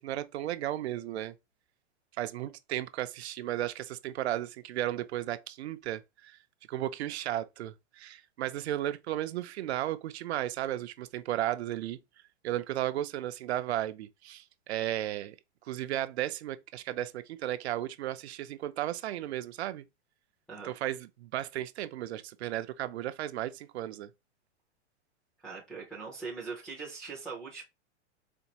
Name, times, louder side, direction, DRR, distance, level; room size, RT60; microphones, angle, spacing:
voice 1, 0.0-1.3 2.2-6.4 6.7-12.0 12.4-15.4 15.6-19.8 20.6-24.1, right 13 dB, 65° right, 0.5 m, -34 dB
voice 2, 25.4-27.6, right 4 dB, ahead, 0.4 m, -41 dB
4.3 x 2.3 x 2.8 m
supercardioid pair, 165°, 35 cm